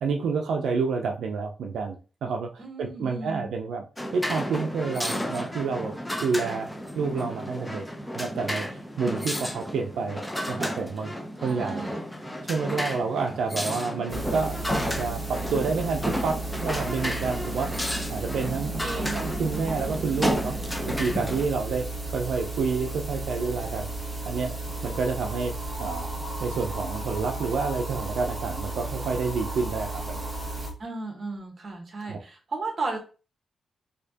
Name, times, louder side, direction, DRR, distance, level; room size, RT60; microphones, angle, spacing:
voice 1, 0.0-3.9 4.1-5.9 6.2-6.7 7.0-7.9 8.1-10.2 10.5-11.1 11.4-11.9 12.5-17.8 18.1-20.5 20.9-21.8 22.1-23.9 24.3-24.5 24.8-25.5 25.8-26.1 26.4-30.3 32.0-32.2, right 5 dB, 90° right, 3 dB, 0.4 m, -29 dB
voice 2, 2.6-3.5 11.4-12.1 18.8-19.3 30.8-33.0, right 3 dB, 40° right, 1 dB, 1.2 m, -34 dB
sound 1, 4.0-21.5, equal, 5° left, 0.5 m, -32 dB
sound 2, 14.1-30.7, right 2 dB, 10° right, 1.1 m, -34 dB
4.2 x 2.8 x 2.8 m, 0.35 s
wide cardioid pair, 145°, 0 cm